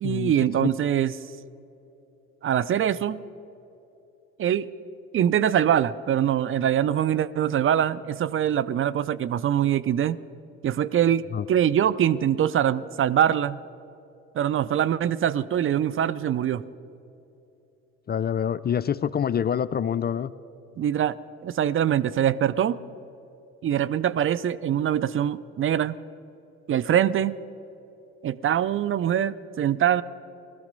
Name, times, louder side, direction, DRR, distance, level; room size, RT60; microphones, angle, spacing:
voice 1, 0.0-1.1 2.4-3.2 4.4-4.7 5.1-10.2 10.6-13.6 14.3-16.6 20.8-21.2 21.4-22.8 23.6-26.0 26.7-27.4 28.2-30.0, right 10 dB, 40° right, 17 dB, 0.5 m, -23 dB
voice 2, 18.1-20.3, left 8 dB, 30° left, 16 dB, 0.4 m, -26 dB
17.0 x 14.0 x 5.3 m, 2.9 s
hypercardioid pair, 60°, 32 cm